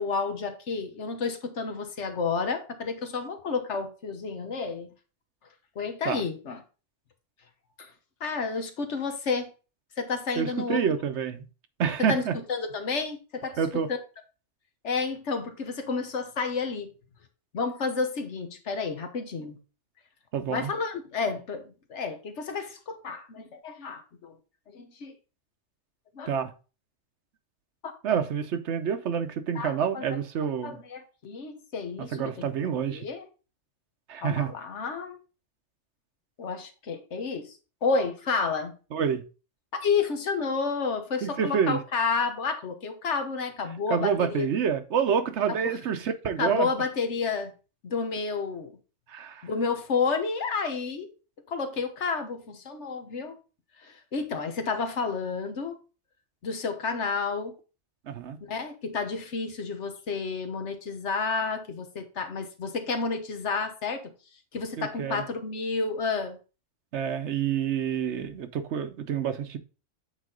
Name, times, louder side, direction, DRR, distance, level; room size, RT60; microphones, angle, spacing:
voice 1, 0.0-4.9 5.8-6.6 7.8-7.9 8.2-9.5 10.0-10.8 12.1-12.2 12.5-13.6 14.8-16.9 17.5-19.6 20.5-21.6 21.9-24.4 24.7-25.1 26.1-26.3 29.5-30.0 30.6-32.5 32.9-33.3 34.2-35.2 36.4-37.5 37.8-38.7 39.8-44.5 46.4-47.5 47.8-48.7 49.4-51.1 51.5-53.3 53.8-55.7 56.4-57.5 58.4-64.1 64.5-66.4, left 4 dB, 70° left, 1.4 m, -30 dB
voice 2, 10.4-11.4 11.8-12.4 13.6-13.9 20.3-20.7 26.3-26.5 28.0-30.8 32.1-33.1 34.1-34.5 38.9-39.2 41.2-41.8 43.9-46.7 49.1-49.5 58.1-58.4 64.8-65.3 66.9-69.6, right 7 dB, 70° right, 1.0 m, -28 dB
8.2 x 4.1 x 3.8 m
omnidirectional pair, 1.2 m